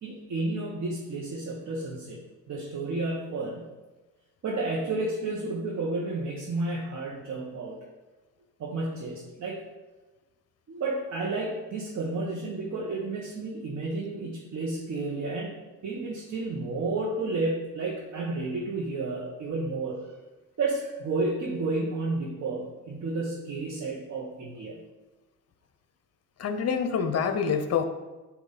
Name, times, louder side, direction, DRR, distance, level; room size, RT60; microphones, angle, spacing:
voice 1, 0.0-2.2 2.5-3.7 4.4-7.8 8.6-9.6 10.7-20.1 20.6-24.8, right 3 dB, 50° right, -3 dB, 1.3 m, -31 dB
voice 2, 26.4-27.8, left 6 dB, 45° left, 7 dB, 0.8 m, -26 dB
8.5 x 2.9 x 4.1 m, 1.2 s
supercardioid pair, 75°, 36 cm